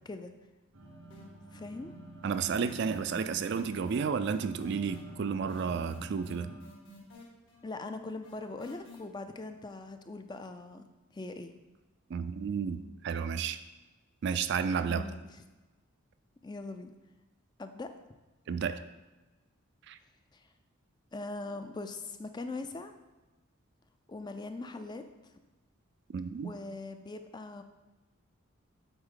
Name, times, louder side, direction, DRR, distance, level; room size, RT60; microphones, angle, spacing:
sound 1, 0.7-6.6, right 2 dB, 80° right, 1.1 m, -48 dB
sound 2, 1.1-1.6 1.8-9.0, left 2 dB, 65° left, 1.8 m, -53 dB
voice 1, 1.5-1.9 7.6-10.9 11.1-11.5 14.9-15.2 16.4-16.9 17.6-17.9 20.3-20.5 21.1-22.9 24.1-25.4 26.4-27.6, left 3 dB, 20° left, 8 dB, 0.3 m, -41 dB
voice 2, 2.2-6.5 12.1-13.6 14.2-15.0 18.5-18.8 19.9-20.0 26.1-26.5, right 6 dB, 55° right, 11 dB, 0.3 m, -32 dB
7.9 x 4.3 x 3.7 m, 1.1 s
head